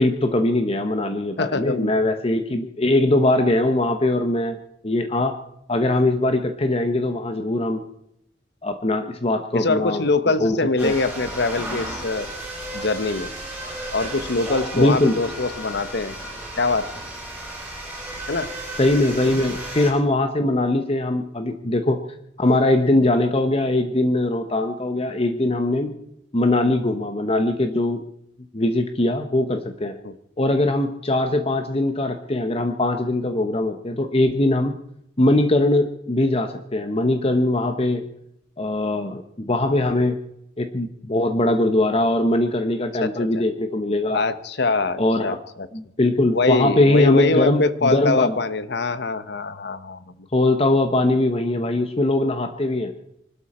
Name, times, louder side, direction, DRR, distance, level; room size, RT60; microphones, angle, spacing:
voice 1, 0.0-4.6 4.8-5.4 5.7-7.8 8.6-10.0 10.4-10.6 10.8-11.0 14.7-15.2 18.8-22.0 22.4-25.9 26.3-28.0 28.5-30.0 30.4-34.8 35.2-38.0 38.6-40.2 40.6-44.2 45.0-45.4 45.7-48.4 50.3-52.9, left 1 dB, 30° left, 7 dB, 1.0 m, -21 dB
voice 2, 1.4-2.0 9.5-12.3 12.7-13.3 13.9-16.1 16.6-16.9 18.3-18.5 30.0-30.1 43.0-43.1 44.1-45.7 46.3-50.1, left 3 dB, 60° left, 13 dB, 1.0 m, -23 dB
sound 1, 10.8-19.9, right 1 dB, 10° right, 6.1 m, -34 dB
24.5 x 12.5 x 4.3 m, 0.78 s
head